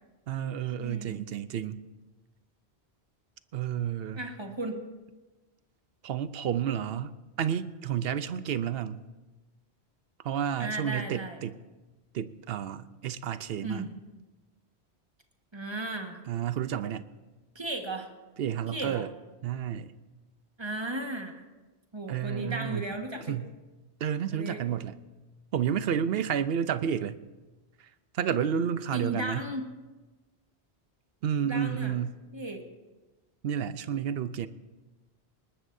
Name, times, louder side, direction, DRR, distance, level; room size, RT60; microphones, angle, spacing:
voice 1, 0.3-1.8 3.5-4.2 6.0-9.1 10.2-11.6 12.1-13.9 16.3-17.1 18.4-19.1 19.4-19.9 22.1-22.9 23.3-23.5 24.0-25.0 25.5-27.2 28.1-29.4 31.2-32.2 33.4-34.5, right 8 dB, 65° right, 0.8 m, -31 dB
voice 2, 0.8-1.2 4.2-4.8 10.6-11.4 13.6-13.9 15.5-16.2 17.5-18.1 18.7-19.0 20.6-21.3 21.9-23.4 24.3-24.6 28.9-29.6 31.4-31.9 32.3-32.6, right 2 dB, 25° right, 1.5 m, -35 dB
20.0 x 19.5 x 2.7 m
omnidirectional pair, 1.1 m